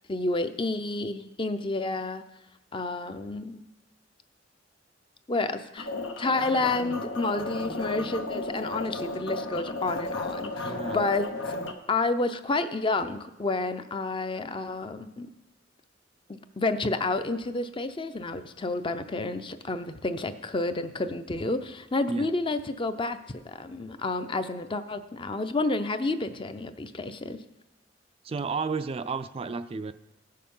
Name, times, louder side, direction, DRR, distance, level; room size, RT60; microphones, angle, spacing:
voice 1, 0.1-2.2 2.7-3.6 5.3-5.9 6.2-11.3 11.9-15.3 16.3-23.2 23.4-27.4, left 2 dB, 25° left, 10 dB, 0.5 m, -30 dB
sound 1, 5.8-11.7, left 2 dB, 90° left, 1.1 m, -34 dB
voice 2, 10.6-11.0 22.1-22.3 28.2-29.9, right 4 dB, 30° right, 11 dB, 0.3 m, -32 dB
16.0 x 6.6 x 5.4 m, 0.95 s
head